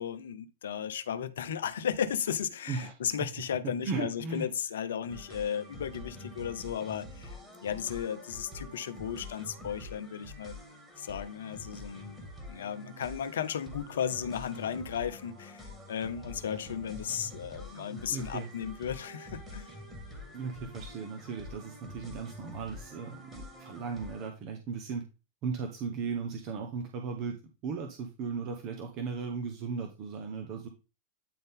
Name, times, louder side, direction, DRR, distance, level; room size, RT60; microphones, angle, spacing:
voice 1, 0.0-10.6 11.0-12.2 12.5-19.7, left 8 dB, 60° left, 0.6 m, -35 dB
voice 2, 3.6-4.5 16.5-16.6 17.7-18.5 20.3-25.0 25.4-27.3 27.6-30.7, right 5 dB, 40° right, 1.1 m, -37 dB
sound 1, 5.1-24.3, left 1 dB, 10° right, 2.0 m, -46 dB
9.2 x 3.9 x 3.8 m
figure-of-eight pair, 90°, 0 cm